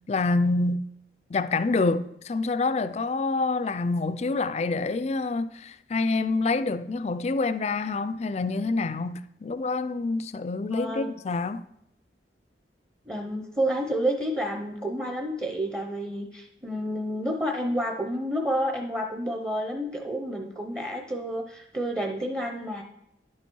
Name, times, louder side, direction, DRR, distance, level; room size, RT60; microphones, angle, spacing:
voice 1, 0.1-0.9 1.3-11.7, left 3 dB, 40° left, 0.4 m, -27 dB
voice 2, 10.7-11.1 13.1-22.8, equal, 15° right, 0.7 m, -30 dB
10.5 x 7.1 x 4.6 m
head